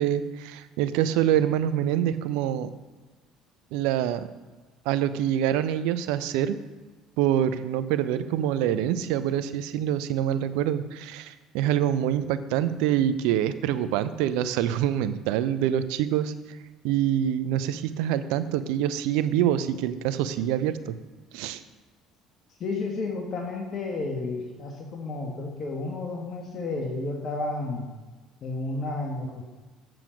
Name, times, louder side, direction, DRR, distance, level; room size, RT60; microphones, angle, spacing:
voice 1, 0.0-2.7 3.7-4.3 4.9-6.6 7.2-16.6 16.8-21.0 21.3-21.6, right 10 dB, 75° right, 13 dB, 0.6 m, -25 dB
voice 2, 22.6-27.9 28.4-29.5, left 3 dB, 50° left, 1 dB, 1.6 m, -32 dB
7.7 x 7.4 x 5.1 m, 1.3 s
hypercardioid pair, 70°, 0 cm